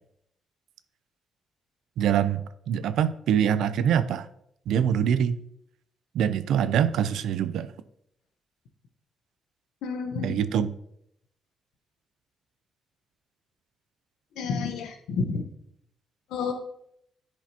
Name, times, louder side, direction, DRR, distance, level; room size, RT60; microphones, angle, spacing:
voice 1, 2.0-4.3 4.7-5.4 6.1-7.7 10.2-10.7, right 9 dB, 80° right, 14 dB, 0.4 m, -24 dB
voice 2, 9.8-10.4 14.4-15.4 16.3-16.5, left 5 dB, 85° left, 5 dB, 1.0 m, -30 dB
10.5 x 5.0 x 2.8 m, 0.74 s
cardioid pair, 90°, 0 cm